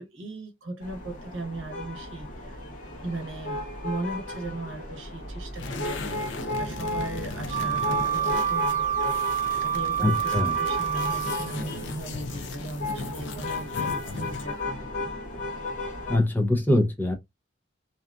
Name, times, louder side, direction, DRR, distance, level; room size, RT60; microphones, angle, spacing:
voice 1, 0.0-2.6 3.0-15.1, right 2 dB, 75° right, 0.8 m, -37 dB
sound 1, 0.8-16.2, left 2 dB, 45° left, 1.0 m, -35 dB
sound 2, 5.5-14.6, left 3 dB, 65° left, 0.5 m, -38 dB
Wind instrument woodwind instrument, 7.5-11.5, right 9 dB, 35° right, 1.0 m, -27 dB
voice 2, 10.0-10.6 16.1-17.1, left 1 dB, 10° left, 0.5 m, -23 dB
2.7 x 2.4 x 2.2 m
head